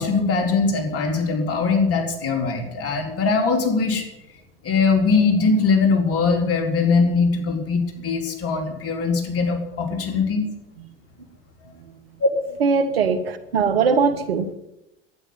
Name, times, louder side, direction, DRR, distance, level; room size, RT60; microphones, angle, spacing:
voice 1, 0.0-4.1 4.6-10.4, left 4 dB, 50° left, 3 dB, 4.2 m, -21 dB
voice 2, 12.6-14.5, right 5 dB, 90° right, 11 dB, 1.4 m, -20 dB
12.0 x 9.9 x 9.7 m, 0.90 s
hypercardioid pair, 75°, 29 cm